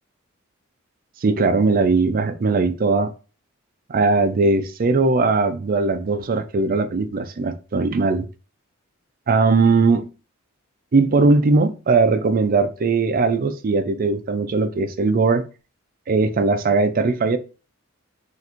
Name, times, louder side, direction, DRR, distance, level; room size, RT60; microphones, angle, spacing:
voice 1, 1.2-3.1 3.9-8.3 9.3-10.1 10.9-15.4 16.1-17.4, right 3 dB, 40° right, 0.4 m, -19 dB
3.8 x 2.5 x 4.3 m
head